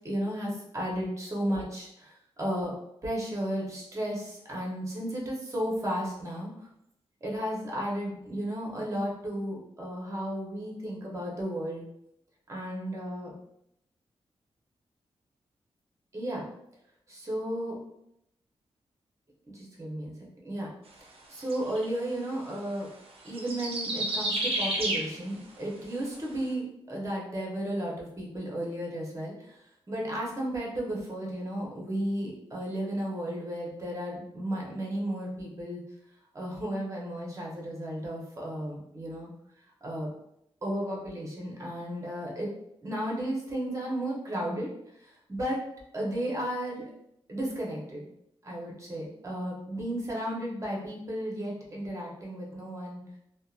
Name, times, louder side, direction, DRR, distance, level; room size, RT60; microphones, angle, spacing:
voice 1, 0.0-2.7 3.0-6.7 7.2-11.9 12.5-13.3 16.1-16.4 17.1-17.8 19.5-20.7 21.3-22.9 23.2-35.8 36.3-39.3 39.8-40.1 40.6-42.5 42.8-44.7 45.0-45.6 45.9-46.9 47.3-48.0 48.4-53.0, right 1 dB, 30° right, -3 dB, 0.9 m, -34 dB
sound 1, 21.4-21.8 23.3-25.2 26.1-26.2, right 1 dB, 65° right, 0.5 m, -30 dB
2.7 x 2.2 x 2.4 m, 0.78 s
cardioid pair, 70°, 11 cm